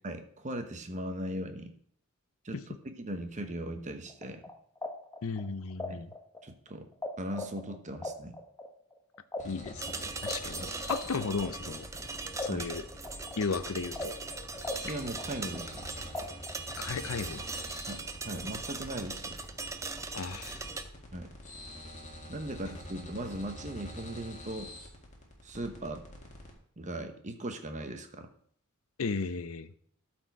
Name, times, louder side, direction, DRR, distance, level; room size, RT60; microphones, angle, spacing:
voice 1, 0.0-1.7 2.4-4.4 5.9-6.0 6.4-6.9 7.2-8.4 10.6-10.7 12.4-12.7 14.8-15.9 17.9-19.3 21.1-21.3 22.3-24.7 25.4-26.0 26.8-28.3, right 1 dB, 35° right, 7 dB, 1.0 m, -39 dB
sound 1, 4.1-7.1 7.3-12.0 12.4-14.9 15.2-16.8, left 2 dB, 15° left, 1.0 m, -39 dB
voice 2, 5.2-6.1 9.4-11.9 12.4-12.9 13.4-14.1 16.8-17.5 20.1-20.6 29.0-29.7, left 4 dB, 65° left, 12 dB, 0.6 m, -35 dB
sound 2, 9.4-26.5, left 1 dB, 35° left, 1.9 m, -47 dB
sound 3, 9.8-20.8, right 3 dB, 15° right, 0.5 m, -40 dB
12.5 x 4.5 x 4.6 m, 0.62 s
head